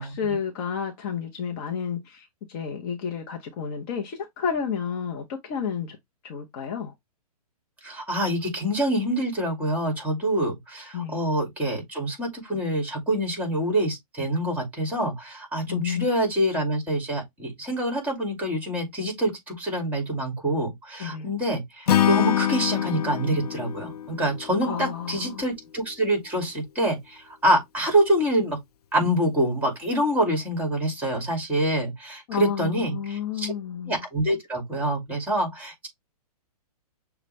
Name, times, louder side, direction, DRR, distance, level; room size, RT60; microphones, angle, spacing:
voice 1, 0.0-6.0 6.2-6.9 10.9-11.3 15.7-16.1 21.0-21.3 24.6-25.4 32.3-34.0, left 7 dB, 35° left, 0.9 m, -31 dB
voice 2, 7.8-28.6 28.9-33.5 33.9-35.9, right 1 dB, 10° right, 2.3 m, -26 dB
Acoustic guitar / Strum, 21.9-25.1, left 10 dB, 75° left, 0.7 m, -25 dB
6.6 x 2.4 x 3.3 m
hypercardioid pair, 140°, 20 cm